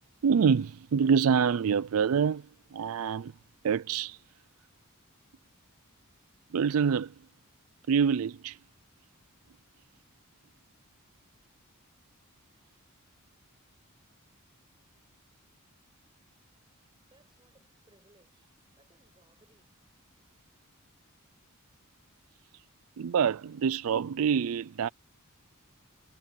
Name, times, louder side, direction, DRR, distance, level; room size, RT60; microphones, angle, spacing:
voice 1, 0.2-3.3 3.6-4.2 6.5-7.2 7.9-8.6 22.5-22.6 23.0-24.9, right 6 dB, 70° right, 0.4 m, -26 dB
voice 2, 17.0-19.7, right 2 dB, 20° right, 6.1 m, -66 dB
head